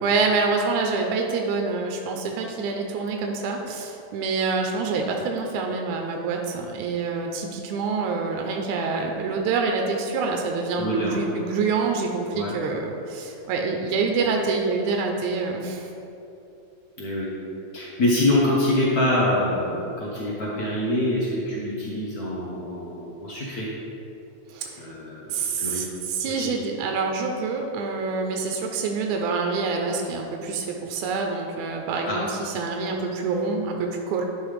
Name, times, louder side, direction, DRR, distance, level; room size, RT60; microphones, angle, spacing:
voice 1, 0.0-15.9 24.5-24.8 25.3-34.2, right 4 dB, 85° right, 2 dB, 2.1 m, -26 dB
voice 2, 10.8-11.2 12.3-12.6 17.0-17.3 17.7-23.7 24.8-25.8 26.2-26.5 32.0-32.2, left 1 dB, 90° left, -6 dB, 0.8 m, -25 dB
11.0 x 5.5 x 3.3 m, 2.8 s
omnidirectional pair, 3.4 m